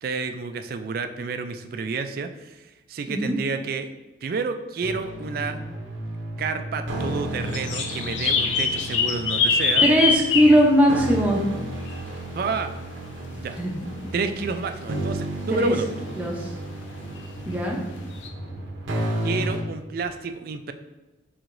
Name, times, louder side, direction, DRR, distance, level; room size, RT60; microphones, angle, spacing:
voice 1, 0.0-3.9 4.2-5.6 6.4-9.9 12.4-12.7 13.4-13.6 14.1-15.9 19.2-20.7, right 4 dB, 50° right, 8 dB, 0.3 m, -30 dB
sound 1, 4.8-19.6, right 1 dB, 80° right, 0.7 m, -33 dB
sound 2, 7.5-10.6 11.9-12.0 17.2-17.3 18.2-18.3, left 5 dB, 75° left, 0.5 m, -23 dB
voice 2, 9.8-11.4 13.3-13.7 14.0-14.1 15.5-15.7 16.2-16.5 17.5-17.8, equal, 10° right, -1 dB, 0.6 m, -20 dB
4.6 x 3.9 x 2.6 m, 1.1 s
head